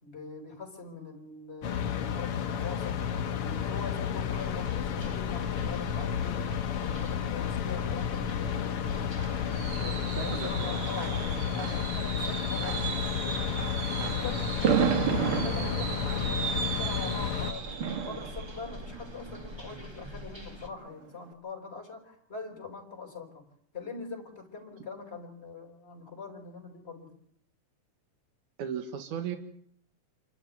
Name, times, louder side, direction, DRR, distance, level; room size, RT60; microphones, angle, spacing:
voice 1, 0.0-9.2 9.5-17.7 18.1-23.4 23.7-27.1, left 4 dB, 20° left, 2 dB, 4.6 m, -43 dB
sound 1, 1.6-17.5, left 8 dB, 60° left, 1.9 m, -32 dB
sound 2, 4.3-20.7, left 2 dB, 10° right, 1.5 m, -45 dB
Fireworks, 8.5-20.2 20.6-20.9 21.1-21.2, right 8 dB, 50° right, 2.1 m, -33 dB
voice 2, 10.1-10.5 28.6-29.4, right 8 dB, 80° right, 6 dB, 3.1 m, -35 dB
27.0 x 12.5 x 9.3 m, 0.65 s
omnidirectional pair, 3.4 m